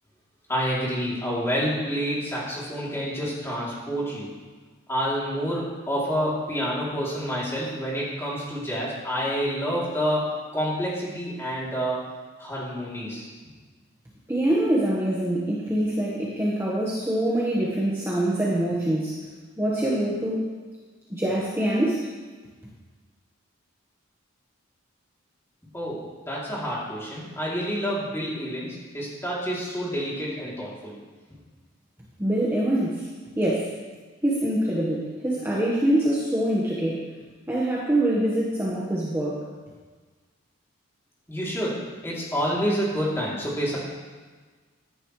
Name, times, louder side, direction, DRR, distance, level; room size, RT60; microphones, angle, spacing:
voice 1, 0.5-4.3 4.9-12.1 12.4-13.3 25.7-30.9 41.3-41.8 42.0-43.8, equal, 10° left, -7 dB, 3.1 m, -28 dB
voice 2, 14.3-19.2 19.6-20.4 21.1-22.1 32.2-33.1 33.4-33.7 34.2-37.0 37.5-39.4, right 1 dB, 10° right, -6 dB, 1.3 m, -24 dB
15.0 x 11.0 x 3.2 m, 1.4 s
head